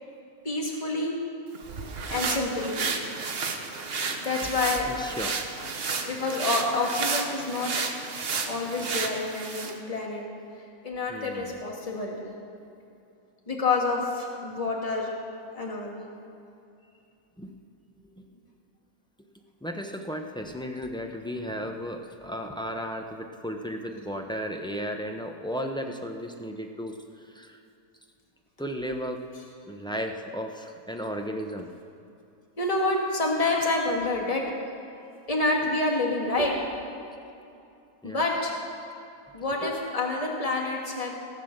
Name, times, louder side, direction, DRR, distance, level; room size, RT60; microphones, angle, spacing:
voice 1, 0.4-1.2 2.1-2.9 4.2-4.9 6.0-7.7 8.5-10.3 10.8-12.2 13.5-15.1 15.5-15.9 32.6-34.5 35.3-36.7 38.0-38.6 39.3-41.1, left 2 dB, 25° left, -1 dB, 1.8 m, -28 dB
sound 1, 1.5-9.8, right 4 dB, 45° right, 1.1 m, -32 dB
voice 2, 4.9-5.3 11.1-11.6 12.5-12.7 17.4-17.5 18.2-18.3 19.6-27.6 28.6-29.2 29.7-31.7 38.0-38.2 39.6-39.7, equal, 5° left, 2 dB, 0.4 m, -35 dB
18.5 x 7.5 x 6.6 m, 2.7 s
omnidirectional pair, 1.5 m